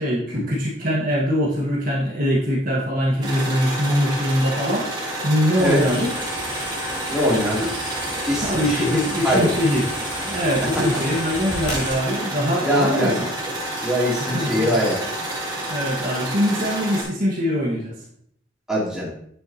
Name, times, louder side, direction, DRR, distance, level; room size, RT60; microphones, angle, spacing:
voice 1, 0.0-4.9 5.2-6.1 8.4-9.8 10.2-13.1 14.3-14.8 15.7-17.9, equal, 45° right, -4 dB, 1.5 m, -22 dB
sound 1, 3.2-17.0, right 1 dB, 20° right, 2.8 m, -29 dB
sound 2, 5.6-12.0, left 1 dB, 55° left, 3.5 m, -34 dB
voice 2, 7.1-7.7 8.3-9.0 9.2-9.5 10.6-10.8 12.6-15.0 18.7-19.1, equal, 5° right, -7 dB, 2.8 m, -23 dB
9.2 x 7.4 x 2.9 m, 0.68 s
head